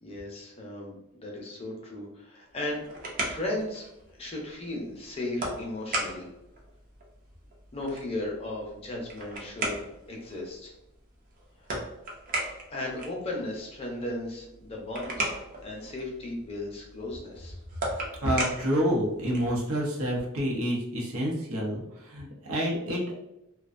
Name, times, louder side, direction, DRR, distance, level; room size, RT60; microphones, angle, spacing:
voice 1, 0.0-2.9 3.2-3.8 4.2-6.3 7.7-9.8 10.1-10.7 12.7-15.3 15.6-17.5, left 1 dB, 30° left, -2 dB, 0.5 m, -36 dB
sound 1, 2.5-19.6, right 1 dB, 40° right, 0.5 m, -38 dB
voice 2, 18.2-23.2, equal, 80° right, -2 dB, 0.7 m, -28 dB
2.4 x 2.2 x 2.4 m, 0.86 s
head